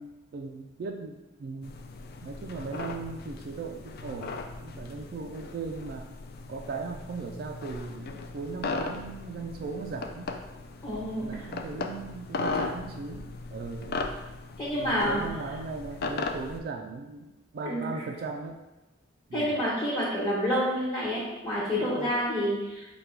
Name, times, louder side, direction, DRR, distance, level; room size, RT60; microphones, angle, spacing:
voice 1, 0.0-1.7 2.2-6.1 6.5-10.4 11.1-14.0 14.8-18.6 19.3-19.6 21.8-22.1, right 4 dB, 50° right, 3 dB, 0.3 m, -38 dB
sound 1, 1.6-16.6, left 3 dB, 55° left, 0.4 m, -37 dB
voice 2, 10.8-11.4 14.6-15.2 17.6-17.9 19.3-22.9, equal, 20° left, -11 dB, 1.1 m, -28 dB
5.1 x 2.2 x 4.5 m, 1.1 s
head